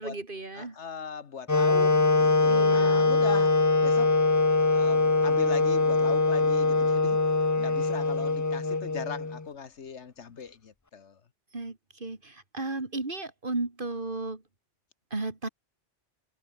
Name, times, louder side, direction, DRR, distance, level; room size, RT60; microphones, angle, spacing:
voice 1, 0.0-0.7 2.5-3.1 11.5-14.4 15.1-15.5, right 2 dB, 45° right, 3.0 m, -34 dB
voice 2, 0.5-4.1 4.7-7.2 7.6-11.2, left 6 dB, 75° left, 1.6 m, -39 dB
Wind instrument woodwind instrument, 1.5-9.4, left 3 dB, 20° left, 0.6 m, -23 dB
omnidirectional pair, 1.2 m